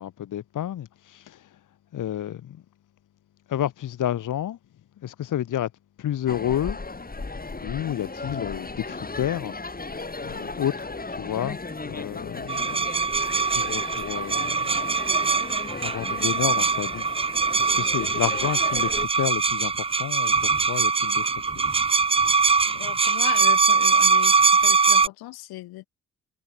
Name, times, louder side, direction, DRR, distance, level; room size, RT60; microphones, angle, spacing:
voice 1, 0.0-1.6 1.9-2.6 3.5-4.6 5.0-5.7 6.0-6.8 7.6-9.5 10.2-10.7 11.2-11.6 11.8-12.9 13.5-14.9 15.2-15.3 15.8-17.0 17.6-21.5, left 11 dB, 50° left, 1.5 m, -30 dB
sound 1, 6.3-19.1, left 3 dB, 20° left, 4.6 m, -36 dB
sound 2, 12.5-25.1, right 4 dB, 15° right, 0.6 m, -22 dB
voice 2, 22.6-25.9, left 17 dB, 65° left, 3.0 m, -38 dB
figure-of-eight pair, 40°, 40 cm